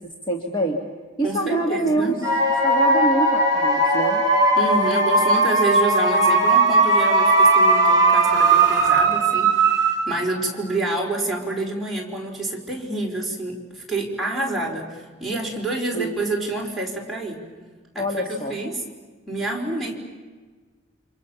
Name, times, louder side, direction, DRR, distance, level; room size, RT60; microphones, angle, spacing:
voice 1, 0.3-0.8 1.2-2.2 2.6-4.2 15.9-16.2 18.0-18.6, right 1 dB, 25° left, 1 dB, 2.1 m, -25 dB
voice 2, 1.2-2.1 4.5-17.4 17.9-18.8 19.3-19.9, right 2 dB, ahead, -4 dB, 4.8 m, -28 dB
sound 1, 2.2-10.3, right 2 dB, 20° right, 6.9 m, -18 dB
29.5 x 26.5 x 7.2 m, 1.4 s
head